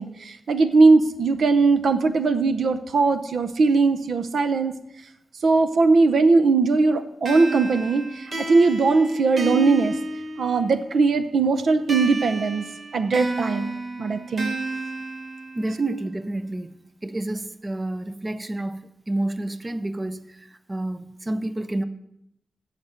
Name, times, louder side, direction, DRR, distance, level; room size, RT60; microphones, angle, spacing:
voice 1, 0.0-4.8 5.4-9.9 10.4-12.6 12.9-14.6, right 3 dB, 65° right, 9 dB, 0.7 m, -20 dB
sound 1, 7.2-10.9 11.9-15.9, right 1 dB, 45° right, 1.3 m, -31 dB
voice 2, 15.5-21.8, right 2 dB, 20° right, 12 dB, 0.6 m, -29 dB
16.5 x 6.7 x 4.4 m, 0.81 s
wide cardioid pair, 160°, 0 cm